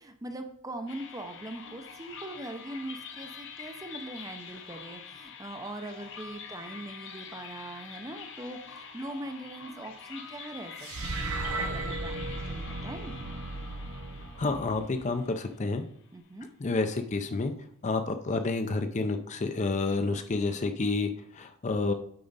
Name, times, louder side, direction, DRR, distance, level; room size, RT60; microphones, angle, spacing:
voice 1, 0.0-13.2 16.1-16.5, right 1 dB, 15° right, 7 dB, 0.5 m, -41 dB
sound 1, 0.9-16.1, left 6 dB, 60° left, 0.8 m, -46 dB
sound 2, 10.8-15.2, right 2 dB, 70° right, 0.8 m, -36 dB
voice 2, 14.4-15.8 16.6-17.5 17.8-21.9, left 3 dB, 35° left, 8 dB, 0.5 m, -29 dB
8.6 x 4.8 x 4.0 m, 0.68 s
head